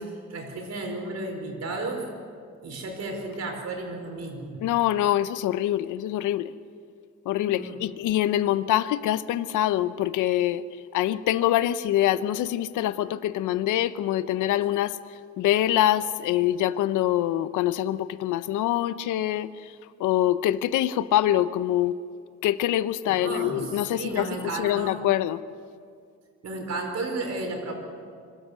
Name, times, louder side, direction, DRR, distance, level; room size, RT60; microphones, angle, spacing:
voice 1, 0.0-2.1 2.6-4.7 7.5-7.8 23.1-25.0 26.4-27.8, right 2 dB, 60° right, 3 dB, 4.8 m, -33 dB
voice 2, 4.6-6.5 7.3-10.6 10.9-14.9 15.4-19.5 20.0-22.0 22.4-24.3 24.6-25.4, left 13 dB, 90° left, 14 dB, 0.8 m, -24 dB
25.0 x 13.0 x 8.3 m, 2.2 s
cardioid pair, 90°, 30 cm